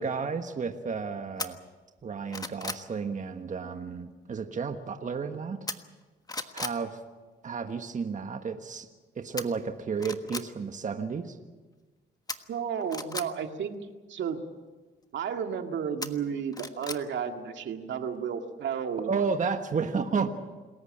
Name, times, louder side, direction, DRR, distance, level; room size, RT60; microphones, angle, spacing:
voice 1, 0.0-1.6 2.0-5.6 6.5-7.0 7.4-8.9 9.1-11.4 19.1-20.3, right 5 dB, 40° right, 6 dB, 1.4 m, -32 dB
sound 1, 1.4-1.5 2.0-2.9 5.7-6.0 6.3-6.8 9.4-9.5 10.0-10.5 12.3-13.3 16.0-17.0 17.4-17.5, left 3 dB, 20° left, 1.4 m, -36 dB
voice 2, 12.5-13.8 14.1-14.4 15.1-19.3 20.2-20.3, right 7 dB, 70° right, 5 dB, 2.0 m, -32 dB
27.0 x 14.5 x 8.8 m, 1.3 s
cardioid pair, 90°, 20 cm